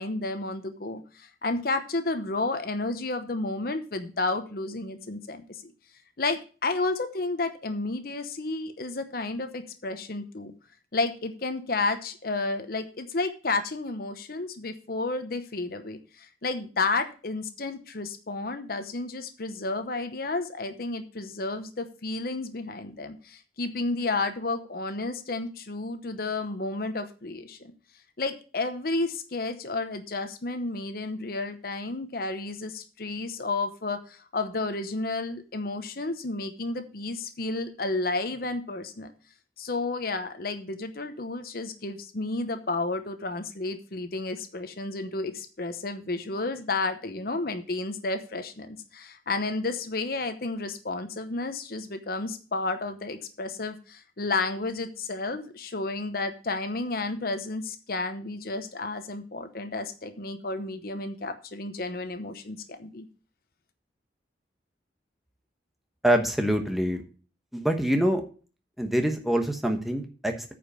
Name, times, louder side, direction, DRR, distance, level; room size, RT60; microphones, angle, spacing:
voice 1, 0.0-5.7 6.2-10.5 10.9-27.7 28.2-39.1 39.6-63.1, left 3 dB, 55° left, 8 dB, 0.9 m, -31 dB
voice 2, 66.0-67.0 67.5-68.2 68.8-70.5, equal, ahead, 4 dB, 1.0 m, -25 dB
9.4 x 5.1 x 6.7 m, 0.37 s
head